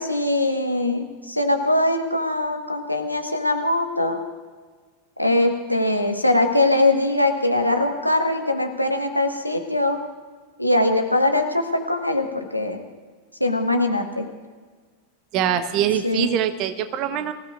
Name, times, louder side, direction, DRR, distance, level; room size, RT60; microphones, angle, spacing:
voice 1, 0.0-4.2 5.2-10.0 10.6-12.8 13.4-14.3 16.0-16.3, left 2 dB, 90° left, 4 dB, 1.4 m, -22 dB
voice 2, 15.3-17.3, right 9 dB, 40° right, 10 dB, 1.1 m, -23 dB
24.5 x 16.0 x 2.5 m, 1.5 s
figure-of-eight pair, 90°, 0 cm